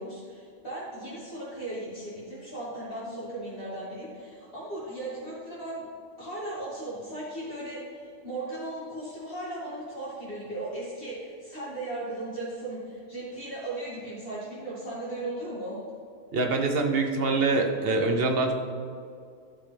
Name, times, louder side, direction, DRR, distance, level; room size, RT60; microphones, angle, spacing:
voice 1, 0.0-5.8 6.2-15.8, right 1 dB, 50° left, -10 dB, 2.7 m, -37 dB
voice 2, 16.3-18.5, right 3 dB, 55° right, 3 dB, 1.1 m, -24 dB
12.5 x 5.6 x 3.4 m, 2.3 s
omnidirectional pair, 1.3 m